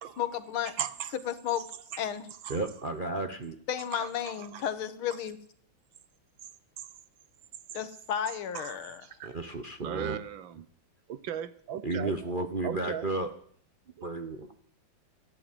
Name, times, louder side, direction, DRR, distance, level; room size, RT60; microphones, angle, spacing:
voice 1, 0.2-0.7 1.1-1.6 2.0-2.3 3.7-5.4 7.7-9.1, left 9 dB, 85° left, 12 dB, 2.0 m, -33 dB
voice 2, 0.8-1.1 2.4-2.6 3.9-4.1 4.5-4.6 8.5-8.8 9.2-9.3 9.8-10.7 11.1-12.1 12.6-13.1 14.0-14.1, right 10 dB, 70° right, 14 dB, 1.6 m, -36 dB
voice 3, 2.5-3.6 9.2-10.2 11.8-13.3 14.0-14.5, right 2 dB, 45° right, 6 dB, 0.6 m, -33 dB
14.0 x 11.0 x 9.0 m, 0.62 s
omnidirectional pair, 2.3 m